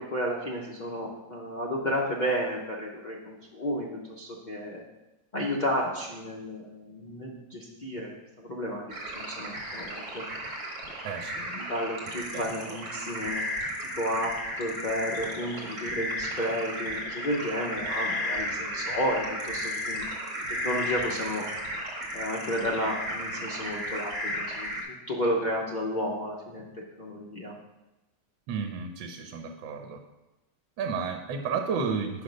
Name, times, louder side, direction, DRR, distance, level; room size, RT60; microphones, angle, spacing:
voice 1, 0.0-4.8 5.3-8.8 9.1-10.3 11.5-13.5 13.8-20.0 20.5-21.5 22.1-26.6 27.0-27.6, equal, 75° left, -3 dB, 0.4 m, -32 dB
sound 1, 8.9-24.8, equal, 60° right, 1.8 m, -34 dB
voice 2, 11.0-11.5 12.3-12.8 28.5-30.0 30.8-32.2, right 5 dB, 80° right, 4 dB, 1.4 m, -32 dB
6.0 x 5.2 x 5.2 m, 1.0 s
omnidirectional pair, 2.0 m